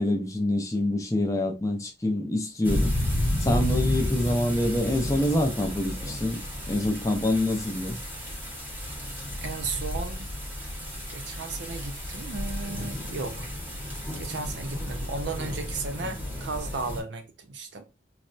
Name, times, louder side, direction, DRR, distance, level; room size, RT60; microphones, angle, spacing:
voice 1, 0.0-3.0 3.4-6.4 6.7-8.0 16.0-16.1, left 1 dB, 15° left, 0.4 m, -26 dB
sound 1, 2.6-17.0, left 1 dB, 10° right, 0.8 m, -32 dB
voice 2, 9.4-10.3 11.1-13.5 14.2-17.9, right 3 dB, 70° right, 0.6 m, -35 dB
4.0 x 2.2 x 2.5 m
head